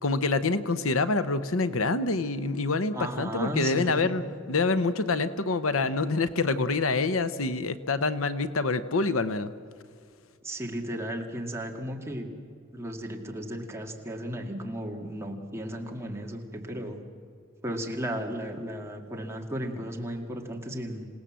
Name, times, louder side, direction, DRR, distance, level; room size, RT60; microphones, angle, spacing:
voice 1, 0.0-9.5, left 3 dB, 75° left, 12 dB, 0.9 m, -26 dB
voice 2, 2.9-4.1 10.4-12.3 12.7-17.0 17.6-21.1, equal, 15° right, 1 dB, 2.1 m, -35 dB
27.0 x 17.5 x 7.5 m, 2.2 s
head